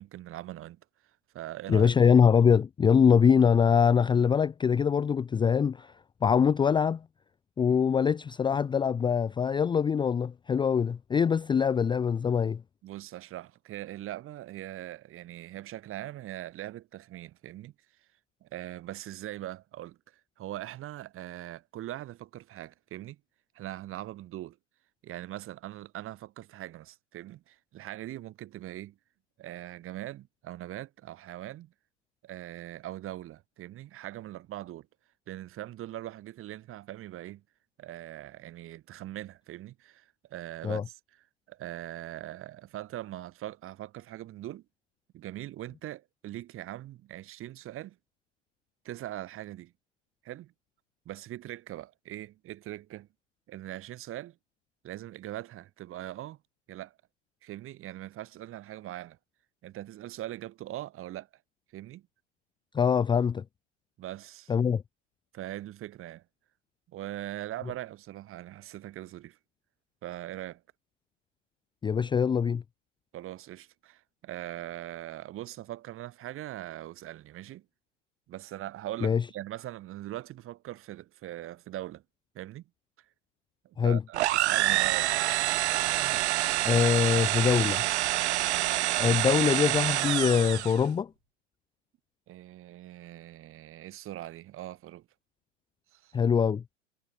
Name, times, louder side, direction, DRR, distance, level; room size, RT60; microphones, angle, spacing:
voice 1, 0.0-1.9 12.8-18.1 18.4-23.2 23.5-24.6 25.0-29.0 29.4-31.7 32.2-34.9 35.3-37.4 37.8-44.6 45.1-48.0 48.8-49.7 50.2-50.5 51.0-53.1 53.5-54.4 54.8-56.4 56.7-57.0 57.4-59.2 59.6-61.3 61.7-62.1 64.0-64.5 65.3-66.2 66.9-69.4 70.0-70.6 73.1-77.7 78.3-82.0 82.3-82.7 83.0-83.1 83.6-85.2 85.9-86.3 88.4-88.7 92.3-95.1 95.9-96.2, right 14 dB, 35° right, 6.3 m, -41 dB
voice 2, 1.7-5.9 6.2-7.0 7.6-12.6 40.6-40.8 62.7-63.4 64.5-64.8 71.8-72.6 79.0-79.2 83.8-84.0 86.6-87.8 89.0-91.1 96.1-96.6, left 7 dB, 15° left, 0.7 m, -23 dB
sound 1, 84.1-90.8, right 16 dB, 60° right, 1.9 m, -27 dB
hypercardioid pair, 105°, 37 cm